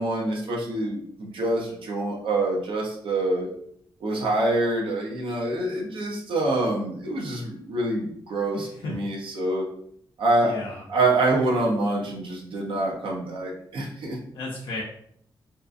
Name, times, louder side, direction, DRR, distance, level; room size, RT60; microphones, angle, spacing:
voice 1, 0.0-3.5 4.0-9.6 10.2-10.5 10.9-14.2, right 2 dB, 80° right, -2 dB, 0.7 m, -26 dB
voice 2, 8.5-9.0 10.4-10.9 14.3-14.8, left 2 dB, 85° left, -2 dB, 0.4 m, -34 dB
2.7 x 2.4 x 2.5 m, 0.68 s
cardioid pair, 90°, 9 cm